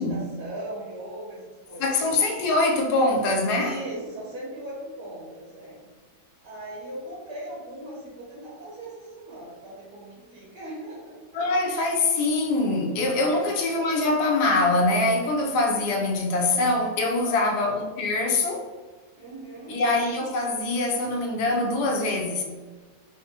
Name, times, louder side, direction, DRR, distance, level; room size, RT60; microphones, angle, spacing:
voice 1, 0.0-1.8 3.6-5.8 6.4-11.2 13.1-13.5 17.1-17.5 19.2-19.8, right 1 dB, 70° right, 1.9 m, -39 dB
voice 2, 1.8-3.8 11.3-18.7 19.7-22.4, left 2 dB, 75° left, 1.2 m, -23 dB
3.6 x 3.5 x 2.8 m
omnidirectional pair, 1.8 m